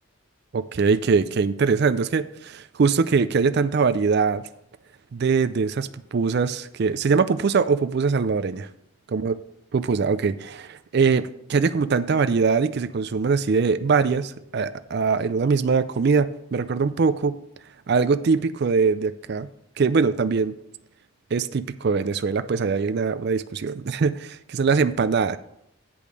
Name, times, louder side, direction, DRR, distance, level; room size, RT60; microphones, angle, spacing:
voice 1, 0.5-4.4 5.1-8.7 9.1-9.3 9.7-17.4 17.9-19.5 19.8-20.5 21.3-25.4, right 5 dB, 50° right, 13 dB, 0.4 m, -22 dB
8.5 x 5.3 x 6.1 m, 0.77 s
head